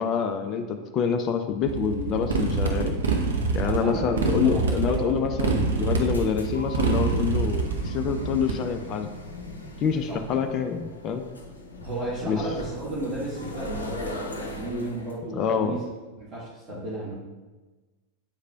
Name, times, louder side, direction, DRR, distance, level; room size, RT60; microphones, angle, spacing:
voice 1, 0.0-3.0 3.5-9.1 9.8-11.2 12.3-12.5 15.3-15.8, left 6 dB, 35° left, 6 dB, 0.4 m, -26 dB
Motorcycle, 1.6-8.5, right 4 dB, 65° right, 0.8 m, -26 dB
voice 2, 3.6-5.1 5.4-5.5 10.1-10.2 11.8-15.8 16.2-17.1, right 2 dB, 30° right, -8 dB, 1.7 m, -34 dB
sound 1, 5.9-15.2, left 1 dB, 75° left, 0.7 m, -39 dB
8.9 x 4.8 x 2.3 m, 1.2 s
figure-of-eight pair, 90°, 0 cm